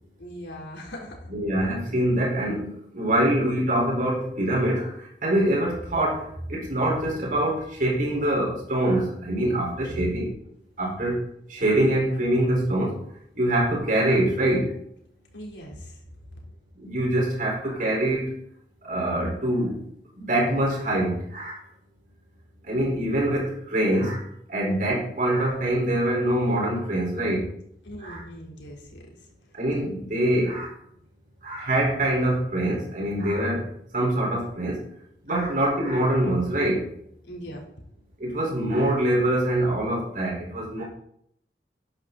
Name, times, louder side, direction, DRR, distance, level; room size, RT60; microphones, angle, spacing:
voice 1, 0.2-1.3 9.7-10.1 10.8-11.1 15.3-16.0 27.8-29.3 35.3-35.5 37.2-37.6, equal, 90° left, 0 dB, 3.5 m, -40 dB
voice 2, 1.3-10.3 10.8-11.2 11.5-13.0 13.3-14.8 16.7-18.3 18.8-19.8 20.2-21.6 22.6-27.5 28.0-28.2 29.5-30.7 31.4-34.9 35.2-36.9 38.2-40.8, right 1 dB, 50° right, -3 dB, 4.5 m, -24 dB
12.5 x 9.7 x 4.1 m, 0.71 s
head